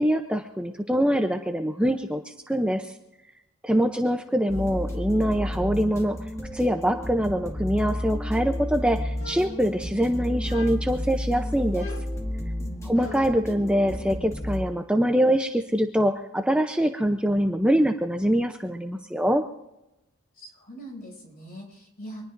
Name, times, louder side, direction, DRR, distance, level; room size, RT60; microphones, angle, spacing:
voice 1, 0.0-2.9 3.6-6.2 6.5-11.9 12.8-19.4, equal, 5° right, 5 dB, 0.6 m, -24 dB
voice 2, 3.7-4.0 12.6-13.0 20.3-22.3, equal, 45° left, -2 dB, 7.1 m, -42 dB
sound 1, 4.5-14.6, left 1 dB, 15° left, 1.9 m, -32 dB
sound 2, 9.2-10.0 10.4-11.1 11.7-13.5, left 3 dB, 65° left, 1.9 m, -42 dB
24.0 x 19.5 x 2.6 m, 0.91 s
head